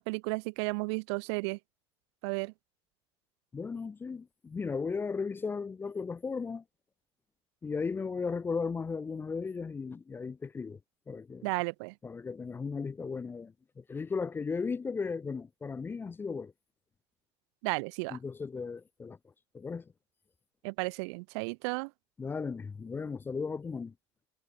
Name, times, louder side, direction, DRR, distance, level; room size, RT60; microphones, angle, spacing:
voice 1, 0.0-1.6 2.2-2.5 11.4-11.9 17.6-18.2 20.6-21.9, right 31 dB, 85° right, 1.2 m, -33 dB
voice 2, 3.5-6.6 7.6-10.8 11.1-11.5 12.0-16.5 18.1-19.2 19.5-19.9 22.2-23.9, left 5 dB, 15° left, 0.8 m, -36 dB
cardioid pair, 160°, 14 cm